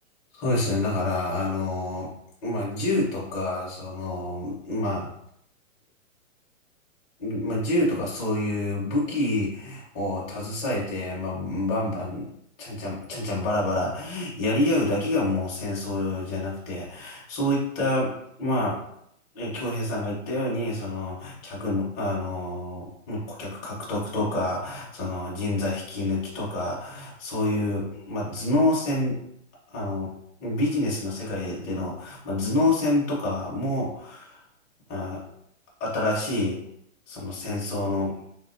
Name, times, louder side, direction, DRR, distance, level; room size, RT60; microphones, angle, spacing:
voice 1, 0.3-2.1 2.4-5.1 7.2-12.3 12.6-18.8 19.3-29.2 29.7-30.1 30.4-34.4 34.9-35.2 35.8-36.6 37.1-38.2, left 1 dB, 20° left, -5 dB, 0.6 m, -27 dB
3.3 x 2.1 x 2.4 m, 0.74 s
hypercardioid pair, 145°, 40 cm